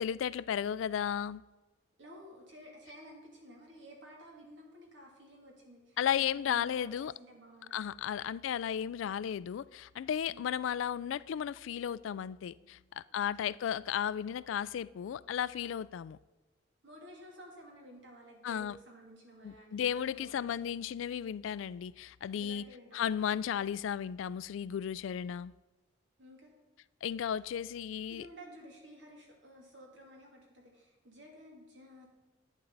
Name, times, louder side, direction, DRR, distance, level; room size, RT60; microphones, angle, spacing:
voice 1, 0.0-1.4 6.0-7.1 7.7-16.2 18.4-18.8 19.4-22.6 22.9-25.5 27.0-28.3, left 9 dB, 80° left, 0.3 m, -34 dB
voice 2, 2.0-8.1 10.2-10.4 12.6-13.7 16.8-21.0 22.4-23.1 26.2-26.5 28.1-32.1, equal, 70° right, 2.7 m, -54 dB
11.0 x 9.4 x 4.0 m
head